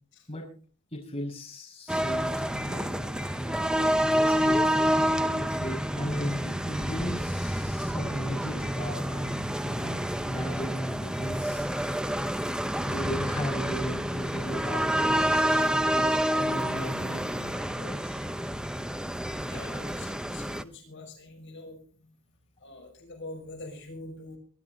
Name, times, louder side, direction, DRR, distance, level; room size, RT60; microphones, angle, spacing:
voice 1, 0.9-11.7 12.8-15.6 15.9-16.1 16.4-18.2, equal, 25° left, 0 dB, 5.7 m, -37 dB
sound 1, 1.9-20.6, equal, 5° right, 0.8 m, -28 dB
voice 2, 19.4-24.4, left 2 dB, 60° left, 3 dB, 5.9 m, -45 dB
24.0 x 12.0 x 3.9 m, 0.40 s
head